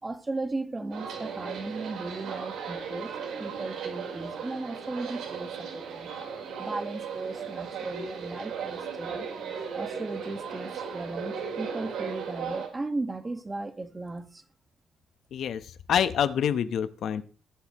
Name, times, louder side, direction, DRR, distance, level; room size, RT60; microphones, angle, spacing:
voice 1, 0.0-3.1 3.4-6.1 6.6-9.3 9.7-14.4, right 2 dB, 20° right, 1.7 m, -36 dB
sound 1, 0.9-12.7, right 6 dB, 75° right, 4.6 m, -36 dB
voice 2, 15.3-15.6 15.9-17.3, left 8 dB, 70° left, 1.2 m, -26 dB
21.0 x 8.0 x 3.2 m
cardioid pair, 90°, 0 cm